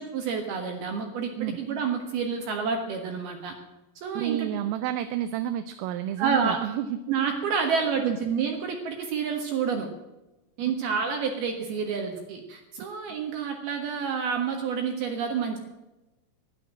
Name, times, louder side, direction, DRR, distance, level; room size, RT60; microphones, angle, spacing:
voice 1, 0.0-3.5 4.0-4.5 6.2-6.6 7.1-9.9 10.6-15.6, right 6 dB, 65° right, 4 dB, 2.8 m, -29 dB
voice 2, 4.2-7.0 7.6-8.2, right 11 dB, 85° right, 10 dB, 3.3 m, -30 dB
12.5 x 11.0 x 7.4 m, 1.0 s
omnidirectional pair, 5.8 m